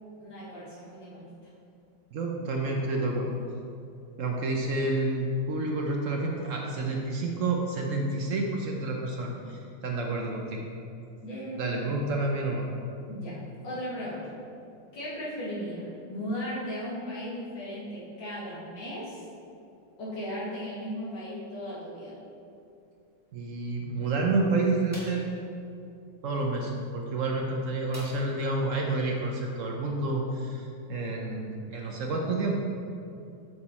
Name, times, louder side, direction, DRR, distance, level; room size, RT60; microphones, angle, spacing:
voice 1, 0.2-1.3 11.2-11.9 13.1-14.3 14.9-19.2 20.0-22.2, equal, 70° left, -8 dB, 2.7 m, -36 dB
voice 2, 2.1-3.4 4.2-10.7 11.6-12.7 23.3-25.3 26.2-32.8, right 2 dB, 70° right, 0 dB, 0.7 m, -29 dB
sound 1, 24.9-25.3 27.9-28.5 28.9-29.0 29.4-29.5, equal, 10° left, 1.4 m, -44 dB
6.9 x 5.9 x 4.1 m, 2.6 s
omnidirectional pair, 2.1 m